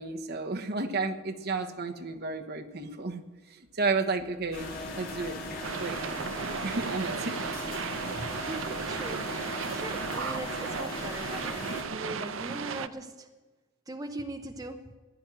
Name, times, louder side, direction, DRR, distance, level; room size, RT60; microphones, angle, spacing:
voice 1, 0.0-3.2 3.7-4.7 5.0-5.4 5.6-6.1 6.6-7.3 8.1-8.2, right 3 dB, 50° right, 4 dB, 1.2 m, -32 dB
sound 1, 4.5-11.8, left 1 dB, 50° left, 4.1 m, -38 dB
sound 2, 5.6-12.9, right 6 dB, 75° right, 0.6 m, -35 dB
voice 2, 8.4-13.3 13.9-14.9, right 2 dB, 20° right, 4 dB, 0.8 m, -40 dB
15.5 x 10.5 x 7.5 m, 1.3 s
head